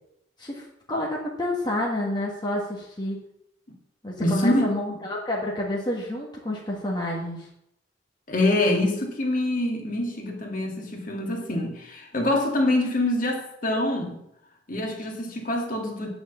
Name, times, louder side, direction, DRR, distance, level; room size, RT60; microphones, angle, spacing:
voice 1, 0.4-3.2 4.0-7.5, left 1 dB, 25° left, -3 dB, 1.8 m, -29 dB
voice 2, 4.2-4.7 8.3-14.2 14.7-16.1, left 1 dB, 45° left, 0 dB, 2.2 m, -25 dB
9.6 x 6.2 x 7.0 m, 0.78 s
head